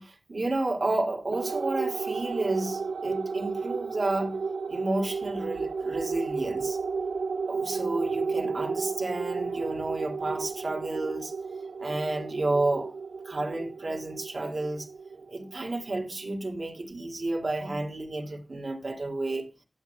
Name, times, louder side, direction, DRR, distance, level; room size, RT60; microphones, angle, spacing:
voice 1, 0.0-4.4 4.7-6.8 7.5-11.3 11.8-12.9 13.2-14.9 15.1-19.4, right 2 dB, 55° right, 2.4 m, -31 dB
sound 1, 1.3-16.1, right 4 dB, 85° right, 0.4 m, -33 dB
16.5 x 8.5 x 2.3 m
cardioid pair, 60°, 0 cm